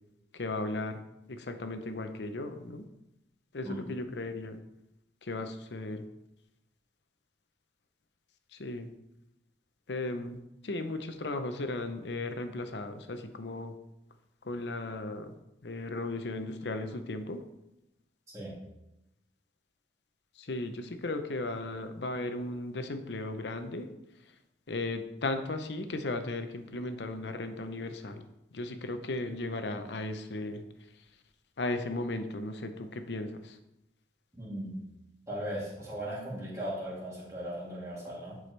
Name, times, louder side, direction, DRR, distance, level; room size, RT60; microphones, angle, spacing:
voice 1, 0.3-1.0 1.3-2.8 3.5-4.6 5.2-6.0 8.5-8.9 9.9-13.7 14.4-15.3 15.6-17.4 20.4-23.9 24.7-28.2 28.5-30.6 31.6-33.6, left 2 dB, 80° left, 8 dB, 0.7 m, -36 dB
voice 2, 18.3-18.6 34.3-34.8 35.3-38.4, right 1 dB, 20° right, -8 dB, 2.9 m, -38 dB
11.0 x 4.9 x 3.3 m, 0.88 s
head